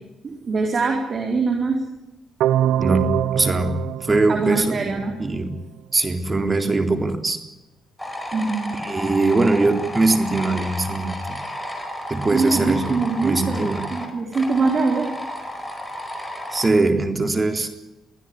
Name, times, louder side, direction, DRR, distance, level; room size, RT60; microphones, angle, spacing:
voice 1, 0.2-1.8 4.3-5.1 8.3-8.8 12.3-15.2, right 4 dB, 45° right, 3 dB, 4.2 m, -23 dB
sound 1, 2.4-5.4, right 11 dB, 85° right, 0.8 m, -24 dB
voice 2, 2.8-5.5 5.9-7.4 8.8-11.4 12.1-13.9 16.5-17.7, right 3 dB, 25° right, 6 dB, 3.9 m, -21 dB
sound 2, 8.0-16.7, equal, 5° left, 4.8 m, -32 dB
23.5 x 15.5 x 9.8 m, 0.93 s
cardioid pair, 90°, 0 cm